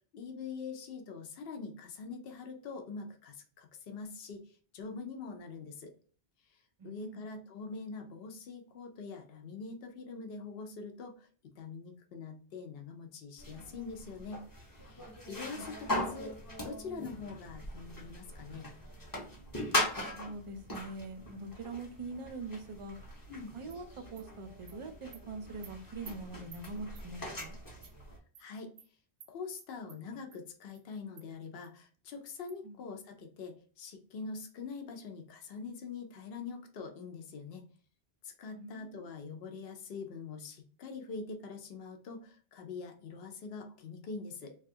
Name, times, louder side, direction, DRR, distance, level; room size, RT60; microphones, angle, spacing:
voice 1, 0.1-5.9 6.5-11.3 11.6-14.4 14.7-16.4 16.6-18.7 23.3-23.5 28.4-28.7 29.3-37.6 38.2-44.6, left 4 dB, 70° left, 0.8 m, -44 dB
voice 2, 6.8-7.2 15.5-15.7 20.1-23.0 23.5-27.6 32.6-32.8 38.5-39.1, right 3 dB, 50° right, 0.4 m, -43 dB
sound 1, 13.4-28.2, left 1 dB, 25° left, 0.7 m, -40 dB
Animal, 23.7-23.8 24.2-24.3 24.7-24.8 25.1-25.2 25.6-25.7 26.1-26.2 26.5-26.6 27.0-27.1 27.4-27.5 27.8-27.9 28.3-28.5 28.8-28.9 29.2-29.3 29.6-30.0 30.3-30.4 30.7-30.8 31.2-31.3 31.6-31.7 32.1-32.2 32.5-32.6, right 8 dB, 90° right, 0.9 m, -53 dB
3.2 x 2.3 x 2.6 m
omnidirectional pair, 1.0 m